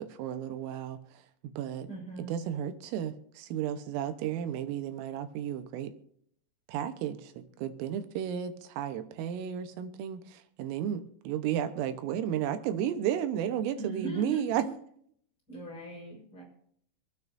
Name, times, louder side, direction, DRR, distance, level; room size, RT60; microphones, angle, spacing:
voice 1, 0.0-1.9 2.3-5.9 6.7-7.3 7.6-14.6, right 10 dB, 90° right, 8 dB, 3.7 m, -33 dB
voice 2, 1.9-2.3 13.8-14.7 15.5-16.4, right 2 dB, 20° left, -4 dB, 4.5 m, -39 dB
26.0 x 9.4 x 2.7 m, 0.65 s
omnidirectional pair, 5.8 m